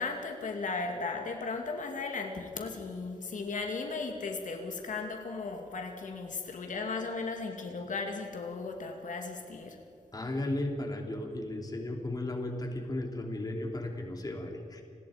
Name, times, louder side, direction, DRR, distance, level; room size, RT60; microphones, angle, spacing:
voice 1, 0.0-9.8, left 4 dB, 80° left, 3 dB, 2.4 m, -36 dB
voice 2, 10.1-14.8, left 1 dB, 30° left, 2 dB, 3.0 m, -35 dB
30.0 x 19.5 x 5.2 m, 2.3 s
wide cardioid pair, 150°, 13 cm